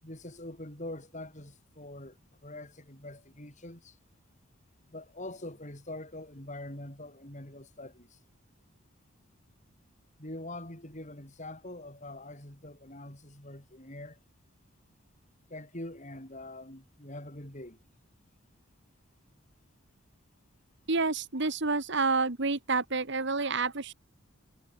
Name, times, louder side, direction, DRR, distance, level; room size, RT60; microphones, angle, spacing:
voice 1, 0.0-4.0 4.9-8.2 10.2-14.2 15.5-17.8, left 1 dB, 35° left, 6.2 m, -44 dB
voice 2, 20.9-23.9, right 3 dB, 60° right, 1.7 m, -29 dB
head